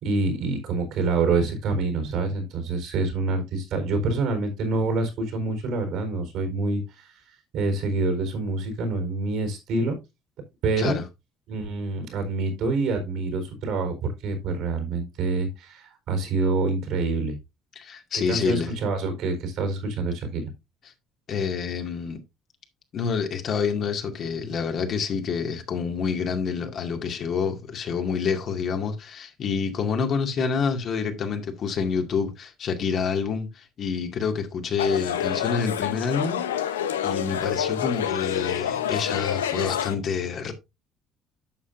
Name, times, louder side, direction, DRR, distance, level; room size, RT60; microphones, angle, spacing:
voice 1, 0.0-7.2 7.5-10.0 10.6-11.0 11.5-13.9 14.2-17.4 18.1-20.4, right 3 dB, 65° right, 4.3 m, -26 dB
voice 2, 17.8-18.7 21.3-22.2 22.9-36.4 37.0-40.5, left 6 dB, 55° left, 2.2 m, -27 dB
sound 1, 34.8-40.0, left 9 dB, 85° left, 0.8 m, -28 dB
11.0 x 7.5 x 2.6 m
hypercardioid pair, 60°, 0 cm